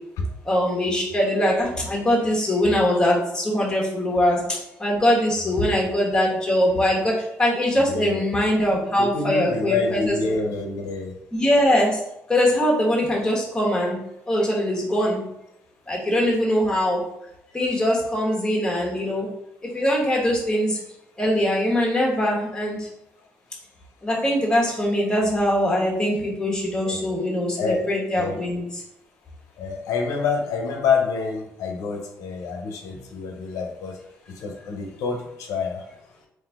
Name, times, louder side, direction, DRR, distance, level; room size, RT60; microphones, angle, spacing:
voice 1, 0.4-10.1 11.3-12.0 12.3-14.0 14.3-15.2 15.9-17.0 17.5-19.3 19.7-20.8 21.2-22.9 24.0-28.8, equal, 15° left, -2 dB, 1.2 m, -22 dB
voice 2, 7.9-8.2 9.0-11.1 26.9-27.0 27.6-27.9 28.2-28.3 29.6-33.9 34.4-35.8, left 4 dB, 85° left, 2 dB, 0.6 m, -27 dB
3.9 x 2.6 x 3.5 m, 0.82 s
cardioid pair, 110°, 5 cm